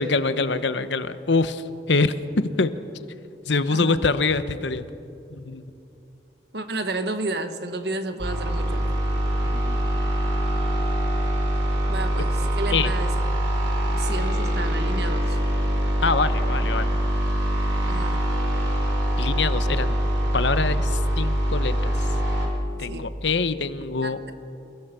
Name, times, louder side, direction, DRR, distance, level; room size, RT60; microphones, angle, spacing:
voice 1, 0.0-2.7 3.5-4.9 5.3-5.7 9.4-9.8 12.7-12.9 16.0-16.9 19.2-20.0 20.3-22.1 22.8-24.2, left 3 dB, 80° left, 12 dB, 0.9 m, -25 dB
voice 2, 6.5-9.0 11.9-13.2 13.9-15.4 17.9-18.2 22.9-23.1 24.0-24.3, right 2 dB, 65° right, 8 dB, 1.4 m, -32 dB
sound 1, 8.2-22.5, equal, 85° right, 4.4 m, -24 dB
29.0 x 16.5 x 6.9 m, 2.8 s
head